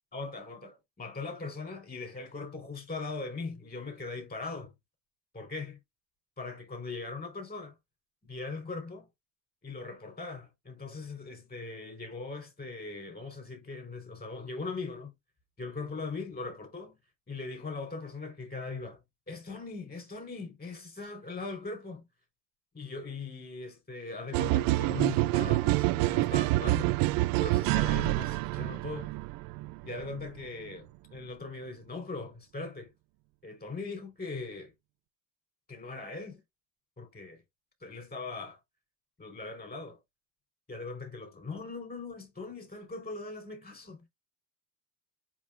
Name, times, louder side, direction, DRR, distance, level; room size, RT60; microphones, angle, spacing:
voice 1, 0.1-4.7 5.3-5.8 6.4-7.8 8.3-9.1 9.6-15.1 15.6-17.0 17.3-19.0 19.3-22.0 22.7-26.9 27.4-29.1 29.8-32.9 33.4-34.7 35.7-36.4 37.0-37.4 37.8-38.6 39.2-40.0 40.7-44.0, left 3 dB, 20° left, 4.7 m, -40 dB
sound 1, 24.3-30.3, right 19 dB, 50° right, 0.5 m, -27 dB
7.4 x 5.8 x 2.6 m
hypercardioid pair, 75°, 44 cm